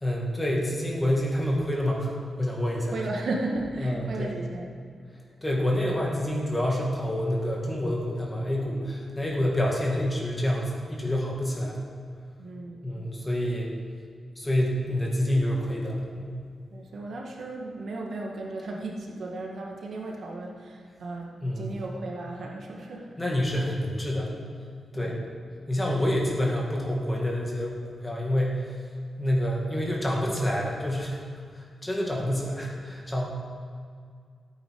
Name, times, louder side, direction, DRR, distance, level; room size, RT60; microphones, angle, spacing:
voice 1, 0.0-2.9 3.8-4.3 5.4-11.8 12.8-13.7 14.4-16.3 21.4-21.8 23.2-24.3 24.9-25.2 25.7-28.7 29.2-31.2 31.5-33.2, left 1 dB, 15° left, -2 dB, 2.1 m, -27 dB
voice 2, 2.9-4.7 12.4-12.8 16.7-23.1 24.9-25.2, right 2 dB, 65° right, 0 dB, 1.7 m, -35 dB
15.0 x 9.2 x 4.8 m, 2.1 s
wide cardioid pair, 160°, 0 cm